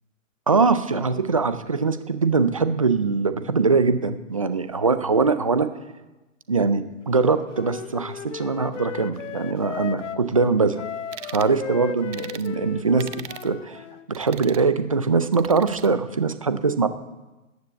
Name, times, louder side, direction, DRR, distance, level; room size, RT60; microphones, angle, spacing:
voice 1, 0.5-5.7 6.5-10.8 11.3-13.1 13.4-13.8 14.1-16.9, right 4 dB, 25° right, 11 dB, 0.4 m, -22 dB
Wind instrument woodwind instrument, 7.1-10.3 10.7-14.1, left 9 dB, 60° left, 0.9 m, -36 dB
sound 1, 11.1-11.5 12.1-12.5 13.0-13.5 14.1-14.7 15.3-15.9, right 9 dB, 60° right, 0.8 m, -39 dB
14.5 x 9.5 x 8.0 m, 1.1 s
hypercardioid pair, 165°, 40 cm